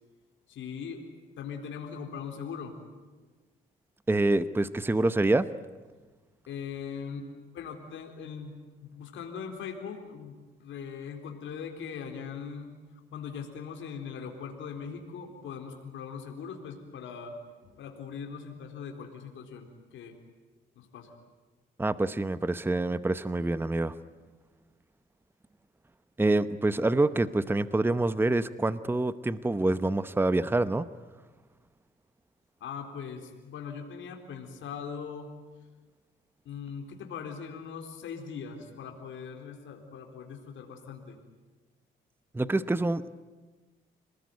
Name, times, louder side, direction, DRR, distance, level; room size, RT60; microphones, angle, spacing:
voice 1, 0.5-1.0 1.4-2.8 6.5-7.3 7.5-8.5 8.8-12.7 13.1-17.3 17.6-19.7 19.9-20.2 20.8-21.1 32.6-35.3 36.4-41.2, left 6 dB, 75° left, 3 dB, 4.1 m, -40 dB
voice 2, 4.1-5.5 21.8-23.9 26.2-30.8 42.3-43.1, right 2 dB, 10° right, 14 dB, 0.9 m, -26 dB
27.5 x 20.0 x 9.5 m, 1.3 s
cardioid pair, 90°, 20 cm